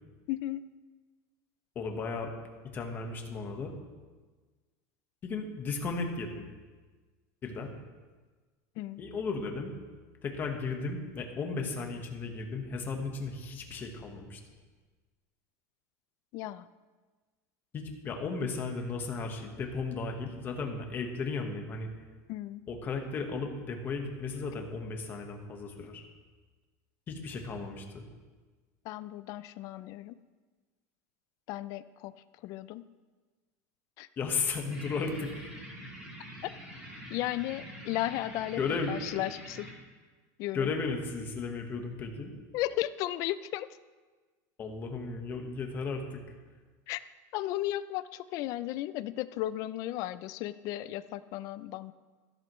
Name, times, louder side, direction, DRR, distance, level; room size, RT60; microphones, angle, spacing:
voice 1, 0.3-0.7 8.8-9.0 16.3-16.7 22.3-22.6 28.9-30.2 31.5-32.1 32.4-32.8 34.0-34.1 36.4-36.5 37.1-38.6 38.9-39.7 40.4-40.7 42.5-43.7 46.9-47.0 47.3-51.9, left 15 dB, 40° left, 15 dB, 0.4 m, -35 dB
voice 2, 1.7-2.3 2.7-3.7 5.2-6.4 7.4-7.7 9.0-9.7 10.2-14.4 17.7-21.9 22.7-26.0 27.1-28.0 34.2-35.5 38.6-38.9 40.5-42.3 44.6-46.2, left 4 dB, 20° left, 3 dB, 1.3 m, -35 dB
sound 1, 34.7-39.7, right 1 dB, 10° right, 3.3 m, -45 dB
14.5 x 12.5 x 3.1 m, 1.4 s
supercardioid pair, 175°, 9 cm